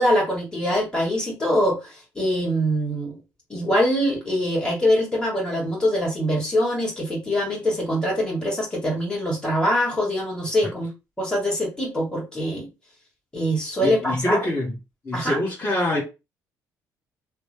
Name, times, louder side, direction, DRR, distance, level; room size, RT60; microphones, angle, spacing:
voice 1, 0.0-3.2 3.5-10.9 11.2-12.7 13.3-14.4 15.1-15.4, equal, 10° left, 1.7 m, -23 dB
voice 2, 13.8-14.8 15.0-16.0, left 1 dB, 30° left, 1.2 m, -25 dB
2.9 x 2.1 x 3.3 m
hypercardioid pair, 60°, 8 cm